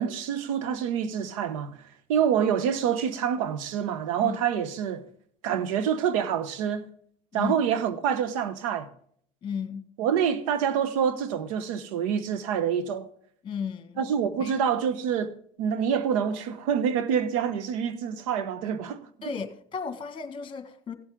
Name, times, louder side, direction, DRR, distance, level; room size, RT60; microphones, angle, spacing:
voice 1, 0.0-1.8 2.1-5.0 5.4-6.9 7.3-8.9 10.0-13.1 14.0-19.0, right 8 dB, 85° right, 1.1 m, -27 dB
voice 2, 9.4-9.9 13.4-14.0 14.4-14.5 19.2-20.9, left 6 dB, 30° left, 1.9 m, -34 dB
16.5 x 7.8 x 3.7 m
supercardioid pair, 100°, 17 cm